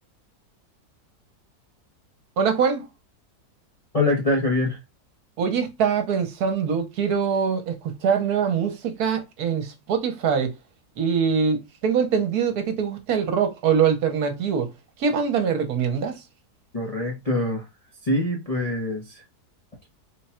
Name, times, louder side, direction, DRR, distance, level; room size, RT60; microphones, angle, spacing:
voice 1, 2.4-2.9 5.4-10.5 11.0-14.7 15.0-16.2, right 6 dB, 70° right, 1.3 m, -23 dB
voice 2, 3.9-4.8 16.7-17.7 18.0-19.2, left 2 dB, 35° left, 0.6 m, -24 dB
3.7 x 2.2 x 4.2 m
omnidirectional pair, 1.8 m